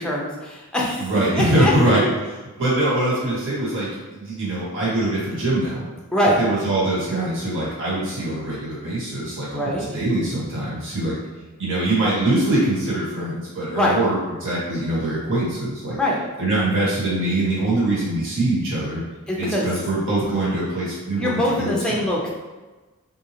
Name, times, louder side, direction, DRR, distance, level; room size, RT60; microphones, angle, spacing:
voice 1, 0.0-1.1 1.4-2.0 6.1-6.4 9.5-9.8 13.7-13.9 16.0-16.2 19.3-19.7 21.2-22.3, left 1 dB, 5° left, -3 dB, 0.5 m, -22 dB
voice 2, 1.0-2.0 2.6-5.9 6.4-11.2 11.6-16.0 16.4-19.0 19.4-22.0, right 1 dB, 55° right, -8 dB, 1.4 m, -23 dB
3.8 x 2.7 x 2.9 m, 1.2 s
head